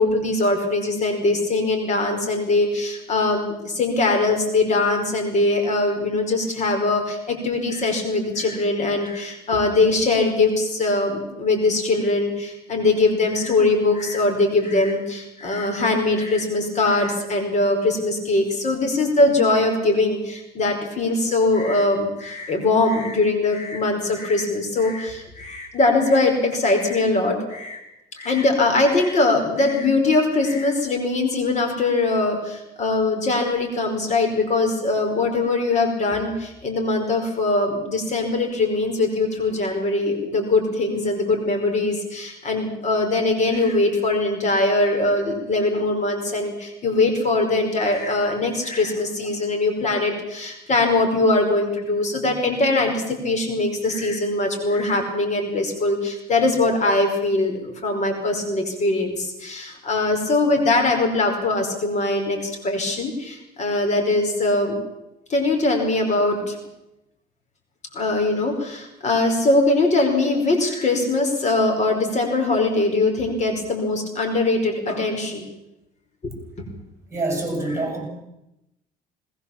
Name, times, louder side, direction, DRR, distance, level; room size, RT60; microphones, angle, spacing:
voice 1, 0.0-27.8 28.2-64.8 65.3-66.6 67.9-75.5 76.6-76.7 77.7-77.8, left 2 dB, 45° left, 4 dB, 5.0 m, -21 dB
voice 2, 77.1-78.1, right 2 dB, 15° right, 5 dB, 7.4 m, -26 dB
20.0 x 19.5 x 7.3 m, 0.89 s
cardioid pair, 110°, 17 cm